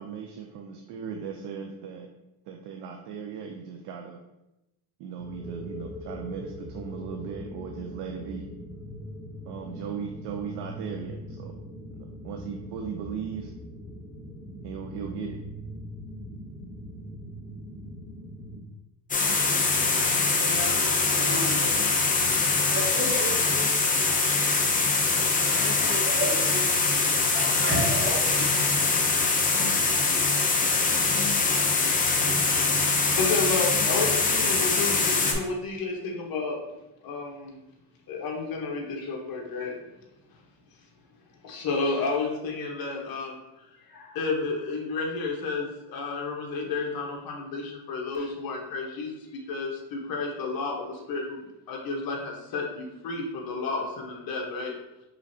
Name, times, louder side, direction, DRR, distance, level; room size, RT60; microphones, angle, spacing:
voice 1, 0.0-2.1 2.5-4.2 5.0-8.4 9.5-11.5 12.2-13.5 14.6-15.4, right 6 dB, 70° right, 2 dB, 0.6 m, -37 dB
sound 1, 5.2-18.6, equal, 5° right, 0.9 m, -41 dB
sound 2, 19.1-35.3, left 3 dB, 20° left, 0.5 m, -23 dB
voice 2, 20.2-21.8 22.2-24.4 25.3-27.0 27.3-28.6, right 1 dB, 30° right, -1 dB, 1.1 m, -34 dB
voice 3, 33.2-36.6 37.0-37.6 38.1-39.8 40.3-40.4 41.4-54.7, left 3 dB, 55° left, -1 dB, 1.2 m, -31 dB
5.0 x 3.2 x 2.7 m, 0.93 s
cardioid pair, 130°, 42 cm